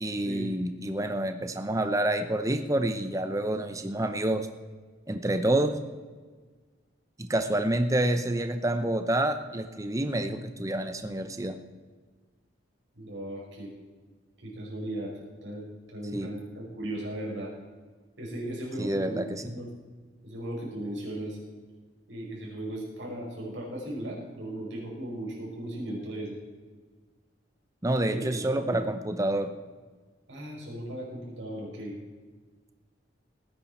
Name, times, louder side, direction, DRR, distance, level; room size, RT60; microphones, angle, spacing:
voice 1, 0.0-4.5 5.1-5.7 7.2-11.6 16.1-16.3 18.8-19.4 27.8-29.5, right 1 dB, 20° right, 8 dB, 0.7 m, -28 dB
voice 2, 12.9-13.7 14.4-15.1 15.4-17.5 18.2-19.7 20.2-21.4 22.1-26.4 28.0-28.8 30.3-31.9, right 1 dB, 85° right, -3 dB, 5.3 m, -37 dB
19.0 x 10.0 x 4.3 m, 1.4 s
head